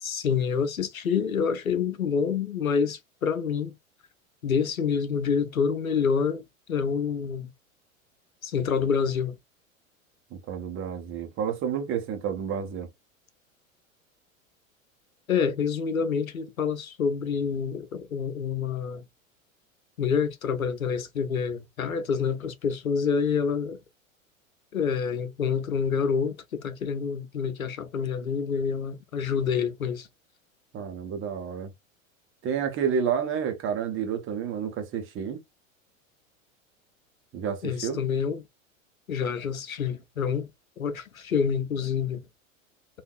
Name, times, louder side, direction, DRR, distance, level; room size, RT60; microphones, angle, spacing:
voice 1, 0.0-3.7 4.4-6.4 6.7-7.5 8.4-9.3 15.3-19.0 20.0-23.8 24.7-30.1 37.6-38.4 39.1-40.5 40.8-42.2, left 6 dB, 85° left, 0.7 m, -27 dB
voice 2, 10.3-12.9 30.7-31.7 32.4-35.4 37.3-38.0, right 7 dB, 30° right, 1.0 m, -30 dB
3.5 x 2.7 x 2.3 m
figure-of-eight pair, 90°, 41 cm